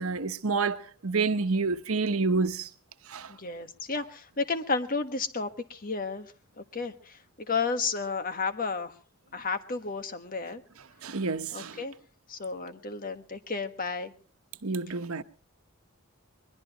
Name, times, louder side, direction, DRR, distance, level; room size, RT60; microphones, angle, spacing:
voice 1, 0.0-2.7 3.1-3.3 11.0-11.8 14.6-15.2, right 4 dB, 85° right, 1.1 m, -28 dB
voice 2, 3.3-7.2 7.5-8.9 9.3-10.6 11.5-11.9 12.3-14.1, left 4 dB, 40° left, 1.5 m, -32 dB
22.0 x 21.5 x 3.0 m
head